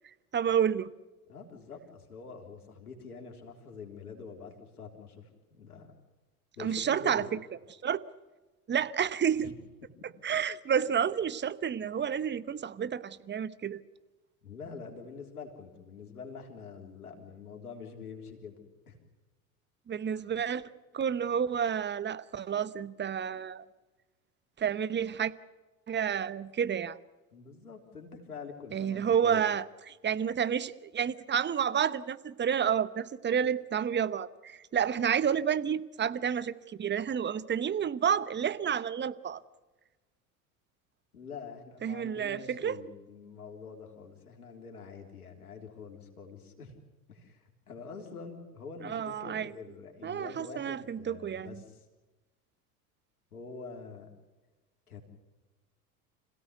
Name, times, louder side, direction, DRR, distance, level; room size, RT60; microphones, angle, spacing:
voice 1, 0.3-0.9 6.6-7.4 7.8-8.0 8.7-9.5 10.2-13.8 19.9-20.6 20.9-23.6 24.6-25.3 25.9-27.0 28.7-39.4 41.8-42.8 48.8-49.5 50.0-51.6, right 8 dB, 25° right, 16 dB, 1.0 m, -30 dB
voice 2, 1.3-5.9 6.6-7.3 9.4-9.5 14.4-19.0 27.3-29.5 41.1-46.7 47.1-51.8 53.3-54.1 54.9-55.0, left 5 dB, 90° left, 3 dB, 3.8 m, -46 dB
26.5 x 17.0 x 8.1 m, 1.2 s
hypercardioid pair, 80°, 44 cm